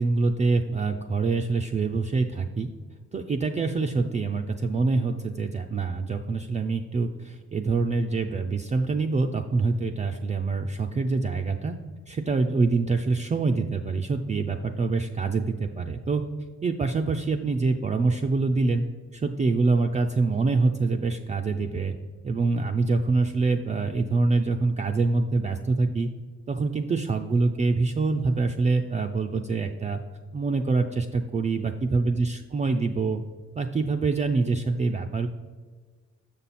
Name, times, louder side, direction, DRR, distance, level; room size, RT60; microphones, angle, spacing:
voice 1, 0.0-2.7 3.1-11.8 12.1-16.2 16.6-18.8 19.1-21.9 22.2-26.1 26.5-30.0 30.3-33.2 33.5-35.3, right 3 dB, 25° right, 3 dB, 0.4 m, -25 dB
6.7 x 5.6 x 4.1 m, 1.4 s
cardioid pair, 90°, 30 cm